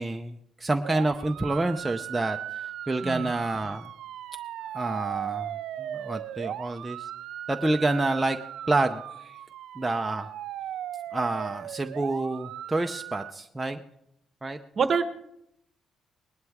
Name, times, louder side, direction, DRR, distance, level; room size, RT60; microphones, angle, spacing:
voice 1, 0.0-3.9 4.7-5.5 5.8-7.1 7.5-8.4 8.7-9.4 9.8-10.3 11.1-13.8 14.4-14.6, right 2 dB, 10° right, 4 dB, 0.6 m, -28 dB
sound 1, 0.8-13.3, right 11 dB, 85° right, 0.4 m, -38 dB
voice 2, 3.0-3.3 14.8-15.0, right 5 dB, 45° right, 10 dB, 1.0 m, -25 dB
20.0 x 11.0 x 3.6 m, 0.76 s
cardioid pair, 140°, 0 cm